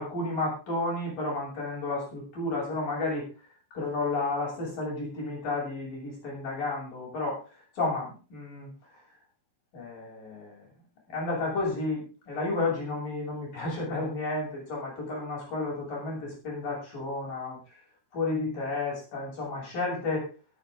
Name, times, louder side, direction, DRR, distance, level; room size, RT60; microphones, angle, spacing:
voice 1, 0.0-3.3 3.7-7.4 7.8-8.7 9.7-10.7 11.1-17.6 18.1-20.3, left 2 dB, 60° left, -3 dB, 9.3 m, -32 dB
22.0 x 9.0 x 3.8 m, 0.33 s
omnidirectional pair, 4.3 m